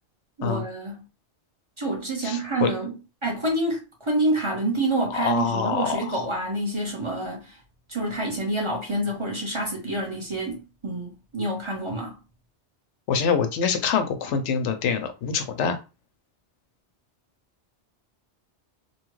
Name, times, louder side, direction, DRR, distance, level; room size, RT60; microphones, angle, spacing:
voice 1, 0.4-1.0 1.8-2.9 3.2-7.5 7.9-12.2, right 2 dB, 30° right, 0.9 m, -27 dB
voice 2, 2.2-2.7 5.1-6.1 13.1-15.8, left 6 dB, 90° left, 0.9 m, -25 dB
2.9 x 2.3 x 3.0 m
omnidirectional pair, 1.2 m